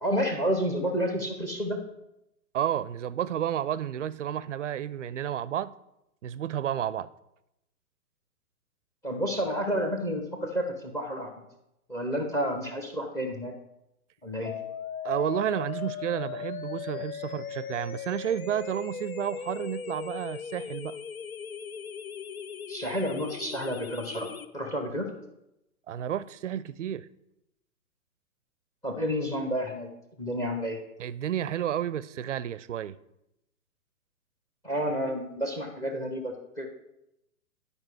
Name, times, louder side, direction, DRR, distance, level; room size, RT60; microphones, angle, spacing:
voice 1, 0.0-1.8 9.0-11.3 11.9-13.5 14.2-14.5 22.7-25.1 28.8-29.9 30.2-30.8 34.6-36.7, equal, 5° left, 0.8 m, -30 dB
voice 2, 2.5-5.7 6.2-7.1 15.0-21.0 25.9-27.1 31.0-33.0, right 10 dB, 55° right, 0.5 m, -31 dB
sound 1, 14.5-24.5, left 8 dB, 65° left, 0.8 m, -38 dB
11.0 x 5.0 x 4.8 m
figure-of-eight pair, 125°, 46 cm